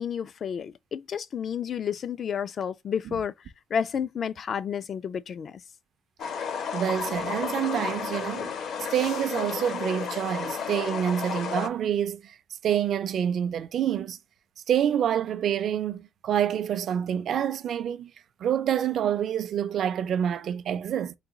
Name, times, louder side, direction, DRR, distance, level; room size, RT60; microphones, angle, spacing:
voice 1, 0.0-3.3 3.7-5.6, left 7 dB, 45° left, 0.3 m, -31 dB
sound 1, 6.2-11.7, left 6 dB, 60° left, 0.8 m, -32 dB
voice 2, 6.7-8.6 8.9-12.4 12.6-14.2 14.7-18.1 18.4-21.1, right 9 dB, 55° right, 0.4 m, -27 dB
sound 2, 7.5-8.4 8.8-10.6 13.1-13.4 14.8-15.3, left 6 dB, 80° left, 1.1 m, -52 dB
4.0 x 2.3 x 3.7 m
cardioid pair, 155°, 0 cm